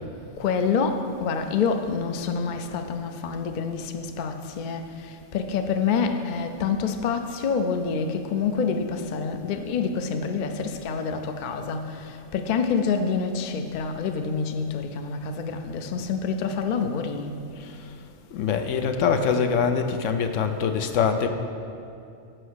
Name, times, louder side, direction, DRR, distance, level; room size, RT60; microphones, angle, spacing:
voice 1, 0.4-17.3, left 5 dB, 55° left, 7 dB, 0.5 m, -27 dB
voice 2, 18.3-21.3, left 6 dB, 75° left, 7 dB, 0.9 m, -24 dB
7.8 x 5.7 x 6.3 m, 2.5 s
omnidirectional pair, 1.3 m